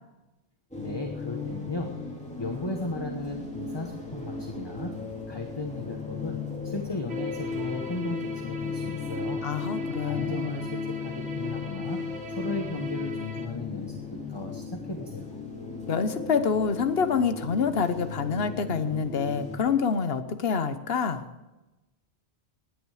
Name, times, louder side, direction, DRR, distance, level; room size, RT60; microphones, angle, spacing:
sound 1, 0.7-19.6, left 4 dB, 5° left, 3.1 m, -37 dB
voice 1, 0.8-2.0 2.4-4.9 5.3-9.5 10.0-12.0 12.4-15.4, left 2 dB, 25° left, 3 dB, 1.2 m, -36 dB
sound 2, 7.1-13.5, left 3 dB, 75° right, 2.4 m, -36 dB
voice 2, 9.4-10.7 15.9-21.2, left 6 dB, 65° left, 10 dB, 1.2 m, -27 dB
18.5 x 10.0 x 4.9 m, 1.0 s
omnidirectional pair, 1.1 m